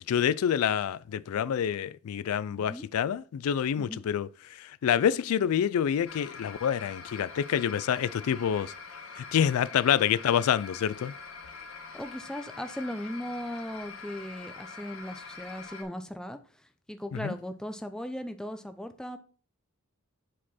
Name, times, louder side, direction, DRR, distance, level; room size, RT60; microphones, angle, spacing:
voice 1, 0.0-4.3 4.6-8.7 9.2-11.1 17.1-17.3, left 9 dB, 85° left, 0.3 m, -27 dB
voice 2, 2.5-2.9 3.8-4.0 11.9-19.2, equal, 5° left, 0.5 m, -38 dB
sound 1, 6.0-15.8, left 4 dB, 65° left, 1.4 m, -44 dB
7.4 x 4.3 x 4.2 m
head